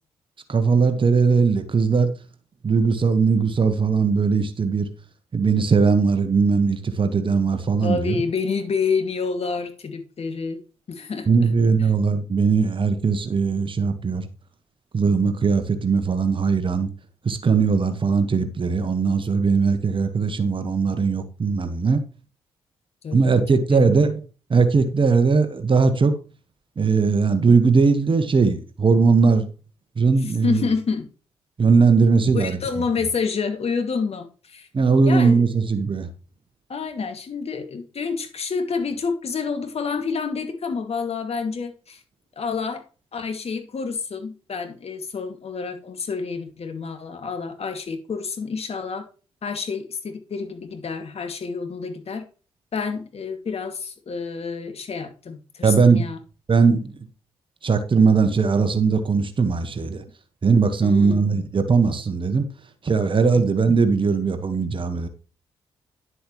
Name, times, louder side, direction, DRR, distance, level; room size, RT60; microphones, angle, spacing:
voice 1, 0.5-2.1 2.6-4.9 5.3-8.1 11.3-14.3 14.9-16.9 17.2-22.0 23.1-24.2 24.5-26.1 26.8-29.5 30.0-30.6 31.6-32.6 34.7-36.1 55.6-56.0 56.5-56.9 57.6-60.0 60.4-62.4 62.8-65.1, right 5 dB, 40° right, 1.6 m, -19 dB
voice 2, 7.8-10.6 10.9-11.3 11.8-11.9 23.0-23.4 23.7-23.8 30.4-31.1 32.3-34.7 35.0-35.5 36.7-42.0 42.4-42.8 43.1-49.0 49.4-52.2 52.7-56.2 60.8-61.2 63.3-63.4, left 5 dB, 55° left, 2.4 m, -28 dB
10.0 x 7.8 x 3.2 m
hypercardioid pair, 45°, 13 cm